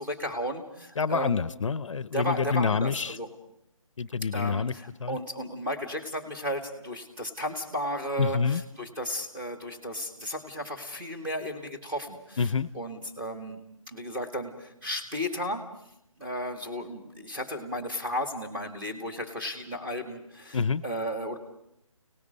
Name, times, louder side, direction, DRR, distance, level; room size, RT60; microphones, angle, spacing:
voice 1, 0.0-1.4 2.1-3.3 4.3-12.5 12.7-13.6 13.9-15.6 16.2-21.4, equal, 10° right, 2 dB, 2.0 m, -34 dB
voice 2, 1.0-3.2 4.0-4.7 5.0-5.2 8.2-8.6 12.4-12.7 20.5-20.8, left 5 dB, 60° left, 17 dB, 0.8 m, -27 dB
29.5 x 18.5 x 5.4 m, 0.77 s
hypercardioid pair, 165°, 18 cm